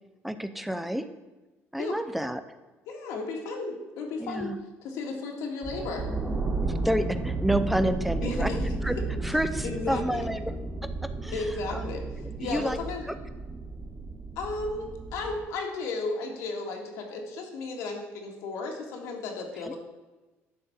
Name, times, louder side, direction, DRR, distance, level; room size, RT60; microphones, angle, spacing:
voice 1, 0.2-1.1 1.7-2.4 4.2-4.6 6.6-8.5 8.8-10.5 10.8-11.9 12.2-12.8 13.1-13.2 19.6-19.7, right 1 dB, ahead, 11 dB, 0.4 m, -30 dB
voice 2, 2.9-4.5 4.8-6.1 8.2-8.6 9.6-10.3 11.3-12.0 12.4-13.1 14.4-19.8, left 3 dB, 85° left, 1 dB, 1.9 m, -34 dB
sound 1, 5.6-15.4, right 3 dB, 20° right, 1.5 m, -33 dB
11.0 x 4.2 x 7.1 m, 1.2 s
cardioid pair, 145°, 5 cm